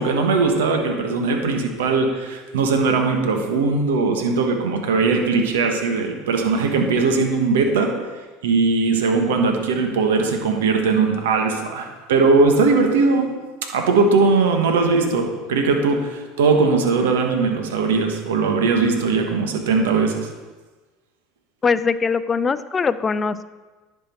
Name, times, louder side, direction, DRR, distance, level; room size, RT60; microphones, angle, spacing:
voice 1, 0.0-7.9 8.4-13.3 13.7-20.3, right 4 dB, 85° right, 4 dB, 1.3 m, -19 dB
voice 2, 21.6-23.5, left 5 dB, 25° left, 14 dB, 0.5 m, -21 dB
10.5 x 6.1 x 4.5 m, 1.3 s
hypercardioid pair, 90°, 0 cm